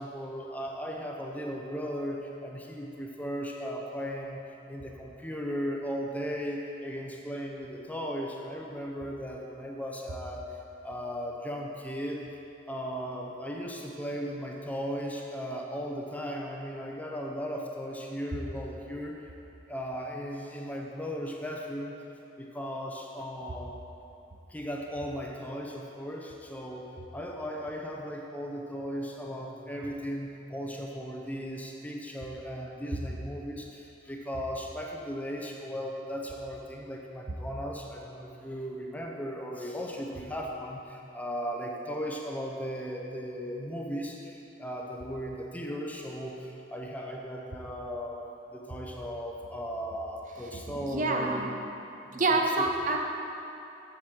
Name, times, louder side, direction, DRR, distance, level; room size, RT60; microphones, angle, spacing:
voice 1, 0.0-12.2 12.7-19.2 19.7-22.0 22.4-23.7 24.5-48.2 48.5-51.5 52.1-52.7, equal, 10° left, -1 dB, 0.7 m, -37 dB
voice 2, 50.8-51.5 52.1-53.0, right 2 dB, 40° right, 2 dB, 0.8 m, -27 dB
7.6 x 7.3 x 6.1 m, 2.9 s
head